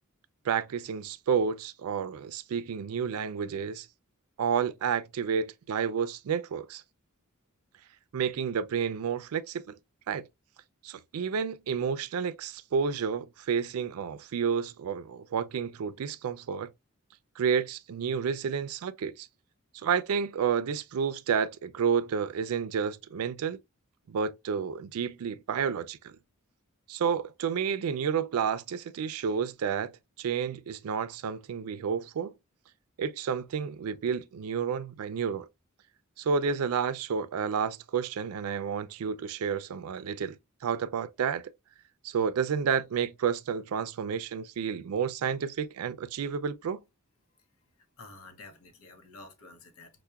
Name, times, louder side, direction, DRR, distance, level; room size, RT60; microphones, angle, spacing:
voice 1, 0.4-3.9 4.4-6.8 8.1-9.8 10.1-10.3 10.8-16.7 17.4-19.3 19.8-23.6 24.1-26.2 26.9-29.9 30.2-32.3 33.0-35.5 36.2-40.4 40.6-41.4 42.0-46.8, right 6 dB, 85° right, 0.4 m, -30 dB
voice 2, 48.0-50.0, left 3 dB, 75° left, 0.7 m, -50 dB
5.5 x 2.1 x 2.3 m
head